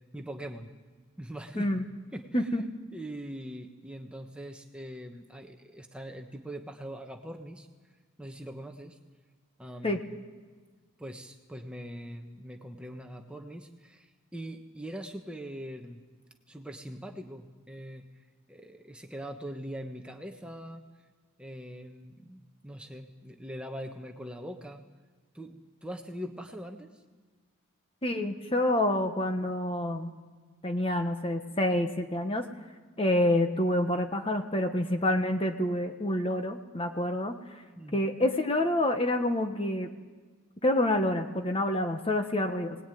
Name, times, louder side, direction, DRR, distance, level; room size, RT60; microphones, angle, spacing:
voice 1, 0.1-0.7 1.2-1.8 2.1-2.5 2.9-7.7 8.2-9.0 9.6-10.0 11.0-16.0 16.5-18.1 18.5-20.8 21.4-24.8 25.3-27.0 37.8-38.0, equal, 5° right, 3 dB, 1.2 m, -42 dB
voice 2, 28.0-30.1 30.6-32.4 33.0-37.3 37.9-39.9 40.6-42.8, left 1 dB, 25° left, 6 dB, 1.3 m, -27 dB
24.0 x 19.5 x 9.3 m, 1.4 s
head